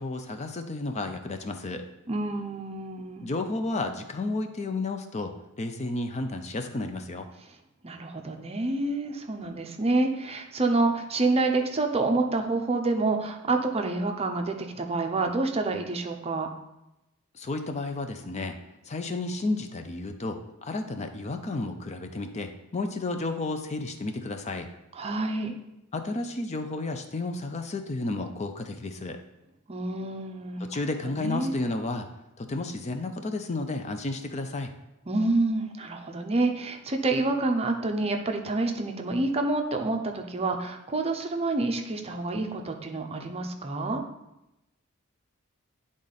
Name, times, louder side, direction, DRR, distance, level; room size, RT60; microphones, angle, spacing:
voice 1, 0.0-1.8 3.2-7.3 17.3-18.5 18.9-24.7 25.9-29.2 30.6-32.1 32.4-34.7, left 2 dB, 30° left, 6 dB, 0.5 m, -32 dB
voice 2, 2.1-3.3 7.8-16.5 25.0-25.5 29.7-30.7 31.1-31.5 35.1-44.0, right 2 dB, 30° right, 4 dB, 0.6 m, -28 dB
10.0 x 3.7 x 4.1 m, 0.91 s
head